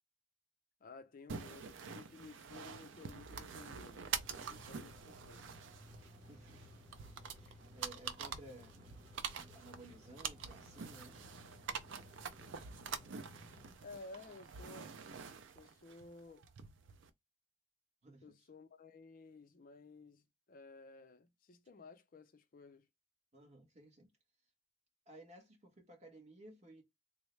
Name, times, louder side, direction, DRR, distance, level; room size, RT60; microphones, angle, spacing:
voice 1, 0.8-5.5 13.8-15.0 15.6-16.5 18.2-22.9, left 3 dB, 45° left, 0.5 m, -55 dB
sound 1, 1.3-17.1, right 6 dB, 70° right, 0.4 m, -46 dB
sound 2, 4.1-13.8, left 1 dB, 20° right, 1.0 m, -58 dB
voice 2, 6.3-6.7 7.3-11.2 12.5-12.6 13.7-13.8 18.0-18.2 23.3-24.1 25.1-26.8, right 1 dB, 35° right, 1.2 m, -57 dB
3.5 x 2.1 x 3.1 m
head